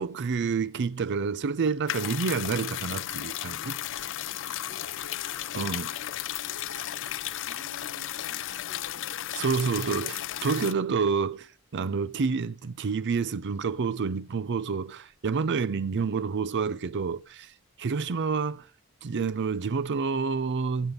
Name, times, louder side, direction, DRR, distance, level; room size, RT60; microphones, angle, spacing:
voice 1, 0.0-3.7 5.5-5.9 9.4-17.5 17.8-18.7 19.0-20.9, right 5 dB, 50° right, 0.5 m, -28 dB
sound 1, 1.9-10.7, left 12 dB, 55° left, 0.5 m, -34 dB
voice 2, 3.5-3.9 4.5-5.6 5.9-6.0 6.3-9.2, right 1 dB, 80° right, 5.0 m, -53 dB
9.6 x 7.3 x 5.1 m
head